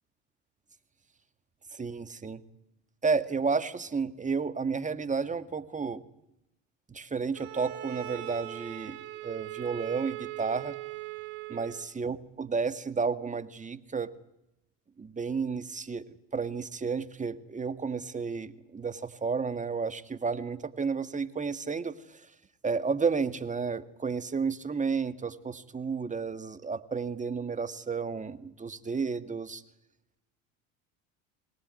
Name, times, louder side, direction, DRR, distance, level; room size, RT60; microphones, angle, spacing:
voice 1, 1.7-2.4 3.0-6.0 6.9-9.0 9.2-10.7 11.5-14.1 15.0-16.0 16.3-22.2 22.6-29.6, right 5 dB, 20° right, 10 dB, 1.8 m, -32 dB
Bowed string instrument, 7.3-11.9, right 15 dB, 70° right, 3.8 m, -40 dB
23.5 x 18.5 x 9.5 m, 0.84 s
hypercardioid pair, 85°, 38 cm